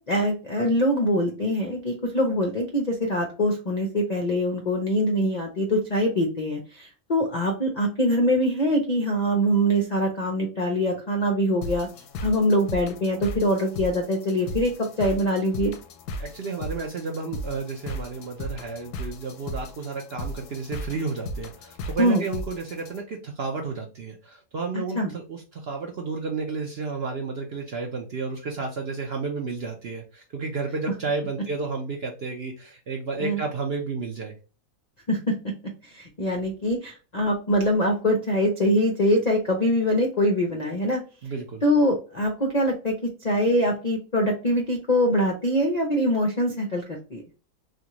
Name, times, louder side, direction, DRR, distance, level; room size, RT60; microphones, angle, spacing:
voice 1, 0.1-11.9 12.2-15.7 22.0-22.2 24.9-25.1 33.2-33.4 35.1-35.5 35.8-41.0 41.6-42.9 43.2-47.2, equal, 55° left, 1 dB, 0.4 m, -23 dB
sound 1, 11.6-23.0, left 1 dB, 90° left, 1.2 m, -36 dB
voice 2, 16.2-34.3 41.2-41.6, right 4 dB, 60° right, 2 dB, 0.7 m, -32 dB
3.3 x 2.5 x 2.8 m, 0.34 s
omnidirectional pair, 1.6 m